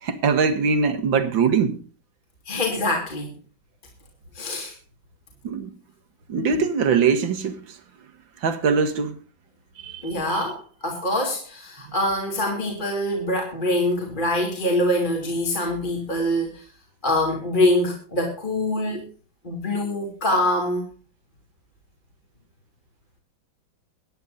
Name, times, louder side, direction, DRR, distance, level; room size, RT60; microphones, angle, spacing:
voice 1, 0.0-1.8 5.4-5.7 6.3-7.8 8.4-9.2 9.8-10.2, right 5 dB, 70° right, 2.4 m, -22 dB
voice 2, 2.5-3.3 4.3-4.7 10.0-16.6 17.0-19.1 19.4-20.9, left 1 dB, 25° left, 3.0 m, -24 dB
24.0 x 10.0 x 2.6 m
omnidirectional pair, 2.2 m